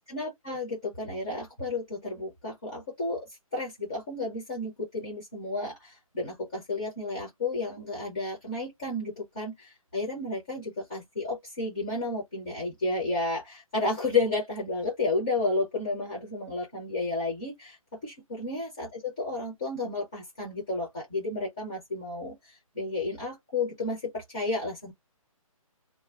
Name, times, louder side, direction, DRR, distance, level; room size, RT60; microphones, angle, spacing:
voice 1, 0.0-3.3 3.5-17.8 18.0-24.9, left 2 dB, 10° left, 0.4 m, -32 dB
2.4 x 2.2 x 3.3 m
hypercardioid pair, 170°, 18 cm